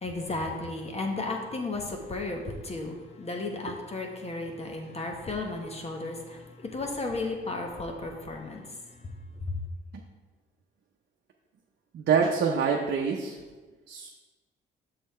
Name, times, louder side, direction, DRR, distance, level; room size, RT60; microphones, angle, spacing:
voice 1, 0.0-9.1 9.4-9.6, left 2 dB, 30° left, 2 dB, 1.0 m, -34 dB
voice 2, 11.9-13.3 13.9-14.1, right 6 dB, 60° right, 1 dB, 0.7 m, -25 dB
6.7 x 5.5 x 4.4 m, 1.3 s
cardioid pair, 90°, 20 cm